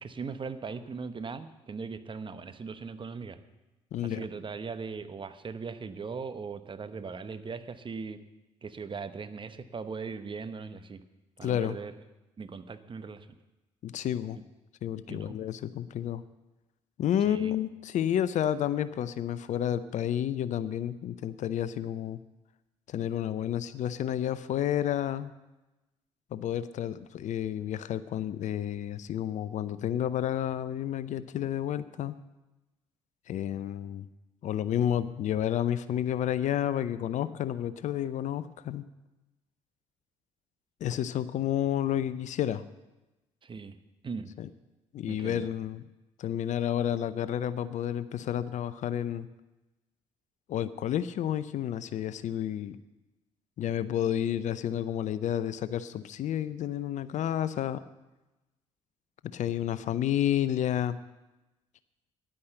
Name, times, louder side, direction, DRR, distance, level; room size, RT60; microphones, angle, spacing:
voice 1, 0.0-3.4 4.0-8.2 8.6-11.0 11.4-11.9 12.4-13.3 15.1-15.4 17.2-17.5 43.4-43.8 44.0-44.3 45.1-45.5, right 5 dB, 35° right, 11 dB, 1.0 m, -39 dB
voice 2, 3.9-4.2 11.4-11.8 13.8-14.4 14.8-16.2 17.0-22.2 22.9-25.3 26.3-32.1 33.3-34.1 34.4-38.8 40.8-42.6 44.4-44.5 44.9-45.8 46.2-49.3 50.5-52.8 53.6-57.8 59.3-61.0, left 10 dB, 50° left, 15 dB, 0.6 m, -30 dB
10.5 x 9.7 x 7.8 m, 1.0 s
hypercardioid pair, 50°, 15 cm